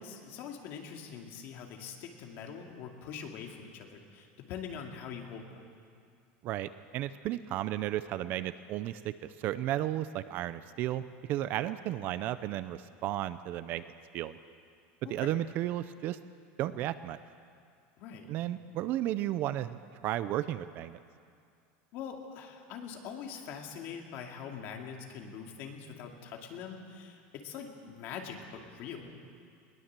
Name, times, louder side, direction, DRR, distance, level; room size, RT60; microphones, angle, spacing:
voice 1, 0.0-5.7 15.0-15.3 18.0-18.3 21.9-29.3, left 7 dB, 40° left, 2 dB, 2.4 m, -43 dB
voice 2, 6.4-11.0 11.3-13.8 14.1-14.4 15.1-16.2 16.6-17.2 18.3-21.0, right 13 dB, 35° right, 14 dB, 0.5 m, -33 dB
21.5 x 19.5 x 7.5 m, 2.3 s
supercardioid pair, 180°, 6 cm